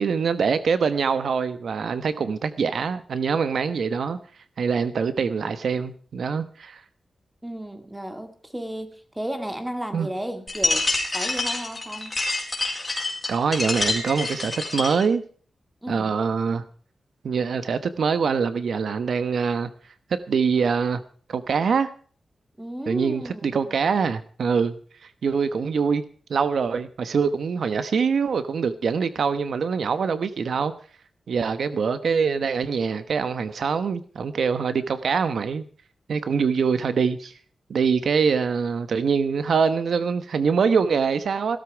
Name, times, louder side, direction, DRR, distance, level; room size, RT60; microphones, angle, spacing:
voice 1, 0.0-4.2 4.6-6.8 9.9-10.1 13.3-15.2 15.9-16.6 17.2-19.7 20.1-21.0 21.3-21.9 22.9-26.0 26.3-30.7 31.3-35.7 36.1-37.3 37.7-41.6, right 5 dB, 70° right, 1.1 m, -24 dB
voice 2, 7.4-12.1 15.8-16.1 22.6-23.7, right 1 dB, 10° right, 2.1 m, -34 dB
sound 1, 10.5-15.1, left 3 dB, 20° left, 4.5 m, -27 dB
16.5 x 13.0 x 4.7 m
wide cardioid pair, 165°, 0 cm